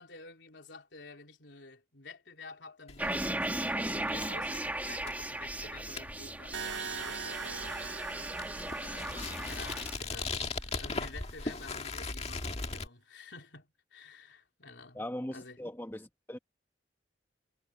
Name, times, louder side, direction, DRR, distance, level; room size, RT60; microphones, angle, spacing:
voice 1, 0.0-8.1 8.8-10.4 10.8-15.0 15.3-15.6, left 3 dB, 75° left, 3.5 m, -50 dB
sound 1, 2.9-12.9, left 3 dB, 35° left, 2.0 m, -40 dB
sound 2, 3.0-10.0, right 1 dB, 10° right, 2.1 m, -36 dB
sound 3, 6.5-10.5, right 6 dB, 75° right, 1.7 m, -43 dB
voice 2, 14.9-16.4, left 1 dB, 10° left, 1.2 m, -40 dB
head